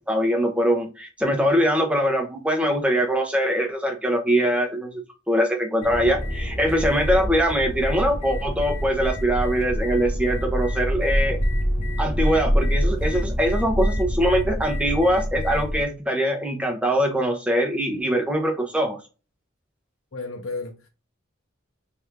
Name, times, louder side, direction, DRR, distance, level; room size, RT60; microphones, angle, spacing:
voice 1, 0.1-11.4 12.0-19.0, equal, 5° right, 0.7 m, -22 dB
sound 1, 5.8-15.8, equal, 35° left, 0.8 m, -26 dB
voice 2, 20.1-20.9, left 3 dB, 80° left, 0.7 m, -33 dB
3.4 x 2.5 x 4.5 m
head